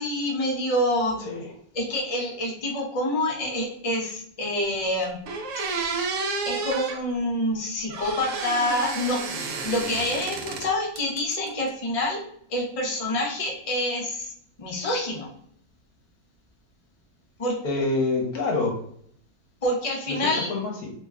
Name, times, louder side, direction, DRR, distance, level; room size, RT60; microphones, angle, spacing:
voice 1, 0.0-1.2 1.7-5.2 6.5-12.2 12.5-14.3 14.6-15.3 17.4-17.6 19.6-20.5, left 1 dB, 45° left, -2 dB, 0.4 m, -27 dB
voice 2, 1.2-1.5 17.6-18.8 20.1-20.9, left 3 dB, 65° left, 1 dB, 1.2 m, -27 dB
sound 1, 4.8-4.9 5.2-7.0 7.9-10.7 11.0-11.7, right 4 dB, 70° right, 0.8 m, -31 dB
3.2 x 2.2 x 3.4 m, 0.65 s
omnidirectional pair, 1.8 m